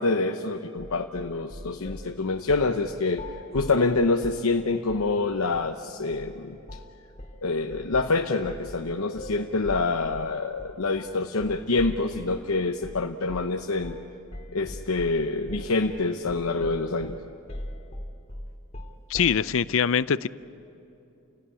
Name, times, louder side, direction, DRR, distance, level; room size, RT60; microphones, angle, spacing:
voice 1, 0.0-3.2 3.5-6.6 7.4-14.0 14.5-17.2, left 3 dB, 85° left, 4 dB, 0.9 m, -26 dB
sound 1, 0.8-2.1 2.5-2.8 3.1-4.5 4.9-5.1 5.5-5.7 6.1-6.3 6.7-6.9 7.2-12.4 12.8-13.0 13.3-13.6 13.8-14.1 14.3-19.5, left 1 dB, 30° left, 2.4 m, -40 dB
voice 2, 19.1-20.3, left 7 dB, 65° left, 17 dB, 0.5 m, -23 dB
29.5 x 17.0 x 9.7 m, 2.8 s
head